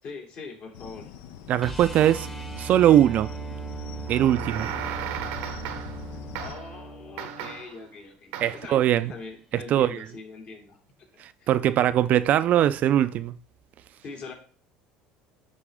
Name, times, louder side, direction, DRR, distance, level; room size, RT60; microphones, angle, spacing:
voice 1, 0.0-1.1 6.3-8.3 8.6-10.8 11.1-11.5 14.0-14.3, left 4 dB, 55° left, 2.7 m, -42 dB
sound 1, 0.7-6.5, left 9 dB, 70° left, 0.7 m, -43 dB
voice 2, 1.5-2.3 2.6-3.3 4.1-4.7 8.4-9.1 9.7-10.0 11.2-13.4, right 11 dB, 55° right, 0.4 m, -21 dB
sound 2, 1.6-7.6 10.1-10.2, right 4 dB, 5° left, 0.9 m, -38 dB
sound 3, 4.1-6.1 6.3-6.8 7.2-7.8 8.3-8.7, right 10 dB, 80° right, 0.8 m, -35 dB
9.9 x 4.2 x 3.6 m
supercardioid pair, 100°, 3 cm